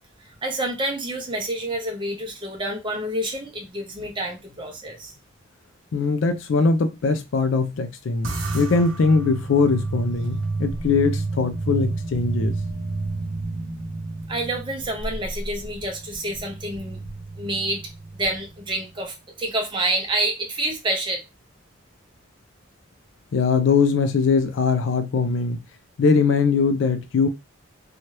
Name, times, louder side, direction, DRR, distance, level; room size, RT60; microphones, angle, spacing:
voice 1, 0.2-5.2 14.3-17.0 17.4-17.8 18.1-21.2, right 1 dB, 25° right, 0.7 m, -28 dB
voice 2, 5.9-12.5 23.3-25.6 26.0-27.3, left 4 dB, 65° left, 0.4 m, -21 dB
sound 1, 8.2-18.8, right 3 dB, 75° right, 0.7 m, -31 dB
2.7 x 2.3 x 3.1 m
head